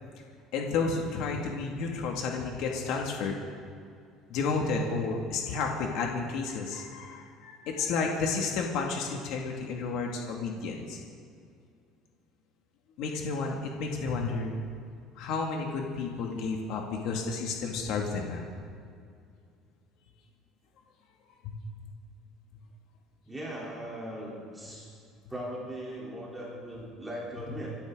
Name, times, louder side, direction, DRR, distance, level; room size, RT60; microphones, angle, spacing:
voice 1, 0.5-3.3 4.3-11.0 13.0-14.6 15.2-18.5 21.4-21.5, left 4 dB, 65° left, 0 dB, 2.3 m, -31 dB
voice 2, 23.3-24.9 25.3-27.8, right 1 dB, 10° right, -6 dB, 3.7 m, -39 dB
26.5 x 13.0 x 3.9 m, 2.4 s
cardioid pair, 155°, 0 cm